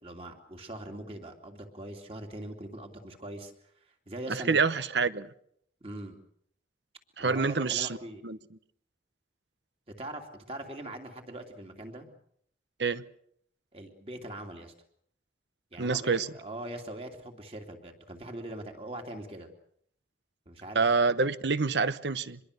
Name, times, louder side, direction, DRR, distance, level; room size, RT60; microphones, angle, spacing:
voice 1, 0.0-3.5 4.1-4.6 5.8-6.2 7.2-8.2 10.0-12.1 13.7-14.7 15.7-19.5 20.5-20.8, right 1 dB, 35° right, 2.9 m, -41 dB
voice 2, 4.3-5.3 7.2-8.0 8.2-8.4 12.8-13.0 15.8-16.3 20.7-22.4, right 4 dB, 75° right, 0.9 m, -27 dB
25.5 x 21.5 x 6.7 m
head